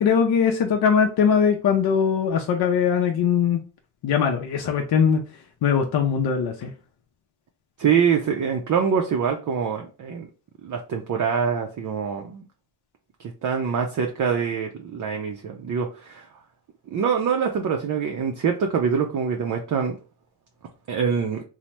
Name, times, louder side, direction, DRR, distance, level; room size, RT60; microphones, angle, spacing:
voice 1, 0.0-3.6 4.0-5.2 5.6-6.7, left 7 dB, 55° left, 2 dB, 0.5 m, -21 dB
voice 2, 7.8-10.3 10.6-12.5 13.4-16.3 16.9-20.0 20.9-21.4, right 6 dB, 45° right, 2 dB, 0.5 m, -24 dB
2.8 x 2.0 x 3.2 m, 0.36 s
cardioid pair, 110°, 45 cm